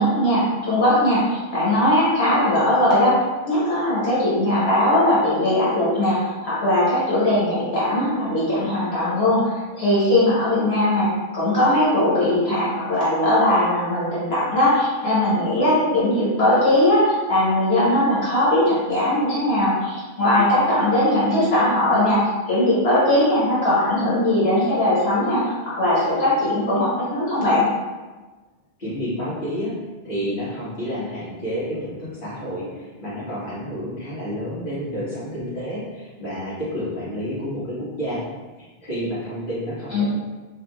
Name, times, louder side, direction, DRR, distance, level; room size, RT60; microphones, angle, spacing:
voice 1, 0.0-3.2 3.4-27.7 39.9-40.0, left 1 dB, 75° left, -9 dB, 1.6 m, -19 dB
voice 2, 28.8-29.8 30.0-38.2 38.6-40.0, equal, 55° left, -10 dB, 1.5 m, -29 dB
4.3 x 3.6 x 2.3 m, 1.2 s
omnidirectional pair, 1.1 m